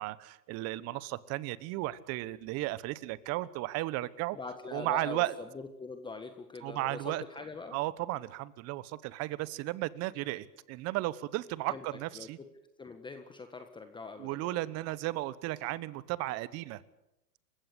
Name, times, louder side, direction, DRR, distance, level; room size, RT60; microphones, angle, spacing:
voice 1, 0.0-4.4 4.7-5.3 6.6-7.2 7.7-12.4 14.2-16.8, right 17 dB, 30° right, 18 dB, 1.1 m, -34 dB
voice 2, 4.3-7.8 11.7-11.8 12.1-12.5 12.8-14.6, left 4 dB, 10° left, 7 dB, 1.5 m, -43 dB
29.0 x 16.0 x 8.1 m, 0.86 s
hypercardioid pair, 120°, 47 cm